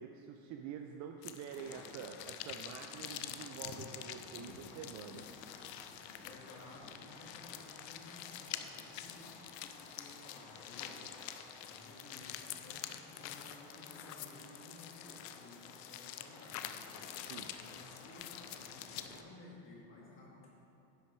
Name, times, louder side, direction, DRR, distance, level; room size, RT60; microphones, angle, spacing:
voice 1, 0.0-5.3 17.3-17.5, right 7 dB, 40° right, 5 dB, 0.4 m, -47 dB
sound 1, 1.2-19.2, left 11 dB, 85° left, 0.7 m, -47 dB
sound 2, 1.5-19.2, left 4 dB, 60° left, 1.3 m, -55 dB
voice 2, 6.2-11.2 11.6-16.9 17.6-20.5, left 2 dB, 25° left, -4 dB, 2.1 m, -56 dB
10.0 x 6.0 x 4.5 m, 2.8 s
supercardioid pair, 125°, 48 cm